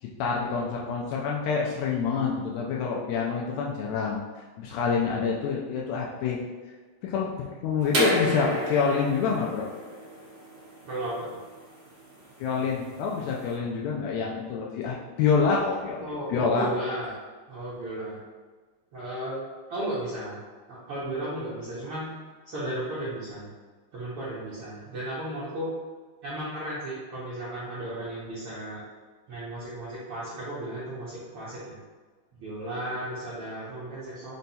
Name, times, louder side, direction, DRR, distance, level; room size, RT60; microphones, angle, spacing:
voice 1, 0.0-6.4 7.0-9.7 12.4-16.7, left 5 dB, 90° left, -3 dB, 1.5 m, -27 dB
voice 2, 1.9-2.3 5.0-5.3 10.9-11.4 16.0-17.1 17.5-18.2 18.9-19.4 19.7-20.4 20.7-22.1 22.5-23.5 23.9-25.7 26.2-28.8 29.3-31.8 32.4-34.4, right 1 dB, 75° right, -9 dB, 1.2 m, -35 dB
sound 1, 7.9-13.5, equal, 45° right, 1.5 m, -31 dB
5.2 x 2.3 x 4.0 m, 1.4 s
omnidirectional pair, 3.7 m